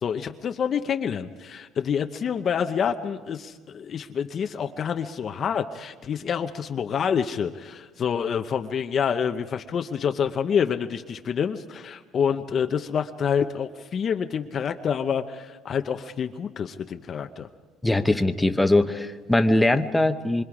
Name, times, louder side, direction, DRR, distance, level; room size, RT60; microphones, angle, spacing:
voice 1, 0.0-17.5, left 7 dB, 40° left, 7 dB, 0.8 m, -27 dB
voice 2, 17.8-20.4, left 1 dB, 5° left, 8 dB, 1.0 m, -21 dB
26.5 x 25.0 x 4.9 m, 1.3 s
cardioid pair, 125°, 0 cm